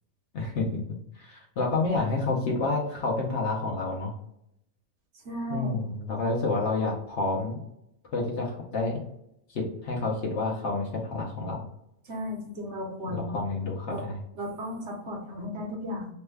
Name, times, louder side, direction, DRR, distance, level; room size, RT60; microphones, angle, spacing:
voice 1, 0.3-0.8 1.1-4.1 5.5-7.6 8.1-9.0 9.5-11.7 13.1-14.2, left 3 dB, 60° left, -2 dB, 0.9 m, -29 dB
voice 2, 5.2-5.8 12.1-13.2 13.9-14.0 14.4-16.1, equal, 55° right, -1 dB, 1.1 m, -35 dB
3.1 x 2.2 x 3.3 m, 0.80 s
omnidirectional pair, 1.5 m